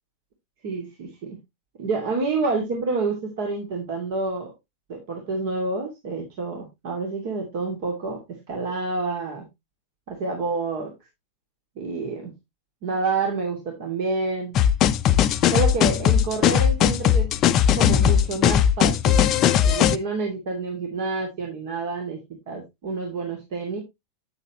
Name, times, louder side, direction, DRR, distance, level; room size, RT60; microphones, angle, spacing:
voice 1, 0.6-1.4 1.8-4.5 4.9-8.2 8.5-9.4 10.1-10.9 11.8-12.3 12.8-14.5 15.5-17.3 17.7-19.3 19.6-22.2 22.5-23.8, right 3 dB, 50° right, 1 dB, 2.6 m, -28 dB
sound 1, 14.5-20.0, left 9 dB, 35° left, 0.6 m, -19 dB
9.3 x 8.2 x 3.0 m, 0.21 s
figure-of-eight pair, 90°, 0 cm